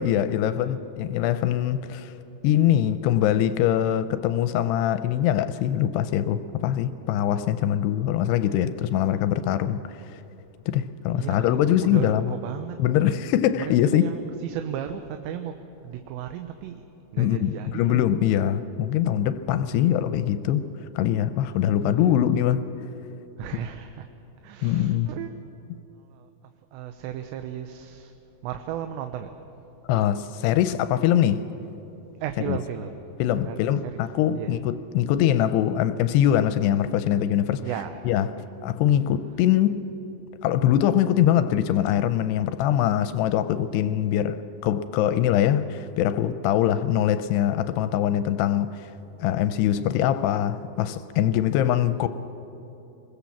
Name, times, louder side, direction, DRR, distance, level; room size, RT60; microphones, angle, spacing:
voice 1, 0.0-2.1 2.4-9.9 10.7-12.3 12.8-14.1 17.2-20.7 21.0-22.6 24.6-25.1 29.9-31.4 32.5-32.6 33.2-37.7 38.1-38.3 38.6-39.8 40.4-44.4 44.6-48.9 49.2-52.1, left 11 dB, 80° left, 2.5 m, -23 dB
voice 2, 11.1-12.8 13.6-16.9 17.1-18.2 19.7-20.0 21.7-22.3 23.4-24.1 24.4-25.3 26.0-26.3 26.7-28.1 28.4-29.3 32.2-33.0 33.3-34.0 34.3-34.6 37.6-38.5 51.8-52.1, right 9 dB, 80° right, 3.0 m, -35 dB
23.5 x 21.0 x 7.3 m
omnidirectional pair, 5.1 m